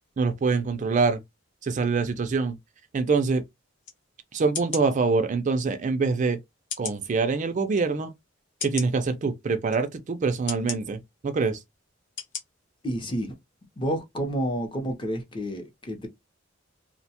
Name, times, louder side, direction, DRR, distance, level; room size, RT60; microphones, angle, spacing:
voice 1, 0.2-1.2 1.6-2.6 2.9-3.4 4.3-6.4 6.8-8.1 8.6-11.6, right 4 dB, 40° right, 0.4 m, -25 dB
sound 1, 3.8-4.0 4.5-4.9 5.6-5.7 6.7-7.0 7.7-7.8 8.6-8.9 9.7-9.8 10.5-10.8 11.5-11.6 12.2-12.4 12.9-13.0, left 6 dB, 65° left, 0.9 m, -34 dB
voice 2, 12.8-13.4 13.8-16.1, equal, 25° left, 0.6 m, -30 dB
2.7 x 2.1 x 2.8 m
head